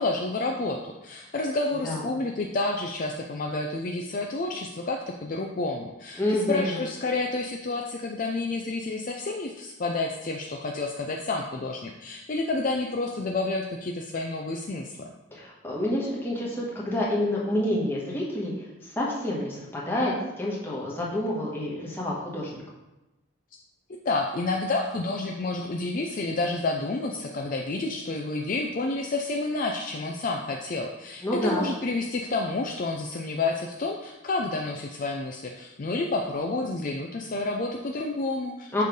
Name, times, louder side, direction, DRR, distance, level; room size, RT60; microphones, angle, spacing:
voice 1, 0.0-6.2 6.5-15.1 23.9-38.8, left 2 dB, 40° left, 2 dB, 0.4 m, -29 dB
voice 2, 6.2-6.8 15.3-22.6 31.2-31.6 38.7-38.8, left 1 dB, 10° left, -5 dB, 1.3 m, -28 dB
6.6 x 3.2 x 5.2 m, 1.0 s
head